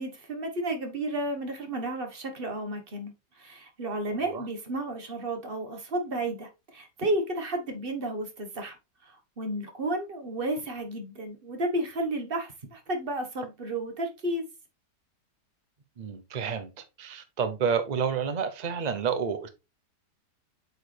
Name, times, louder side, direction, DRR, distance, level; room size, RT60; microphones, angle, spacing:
voice 1, 0.0-8.7 9.0-14.4, right 1 dB, 35° right, 1.4 m, -32 dB
voice 2, 16.0-19.5, right 6 dB, 80° right, 0.4 m, -30 dB
8.0 x 4.7 x 3.3 m
omnidirectional pair, 1.9 m